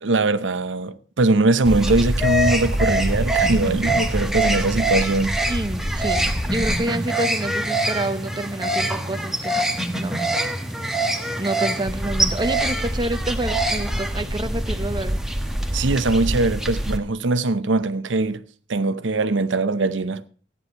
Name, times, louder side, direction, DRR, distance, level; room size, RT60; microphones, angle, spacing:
voice 1, 0.0-5.3 15.7-18.4 18.7-20.3, right 3 dB, 90° right, 0.8 m, -21 dB
sound 1, 1.6-17.0, right 1 dB, ahead, 1.2 m, -24 dB
voice 2, 5.5-9.7 9.9-10.2 10.8-10.9 11.4-15.2, right 1 dB, 25° right, 0.7 m, -28 dB
14.5 x 9.8 x 5.5 m
head